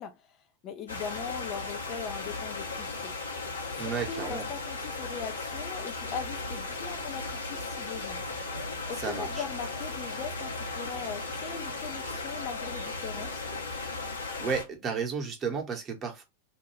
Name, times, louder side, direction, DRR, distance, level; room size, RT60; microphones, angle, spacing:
voice 1, 0.0-3.1 3.7-8.2 8.9-13.5, left 7 dB, 35° left, 0.4 m, -40 dB
sound 1, 0.9-14.6, left 3 dB, 75° left, 0.8 m, -36 dB
voice 2, 3.8-4.5 9.0-9.4 14.4-16.2, right 6 dB, 25° right, 0.9 m, -33 dB
sound 2, 6.1-13.4, right 3 dB, 75° right, 0.6 m, -46 dB
2.5 x 2.2 x 3.2 m
figure-of-eight pair, 90°, 0 cm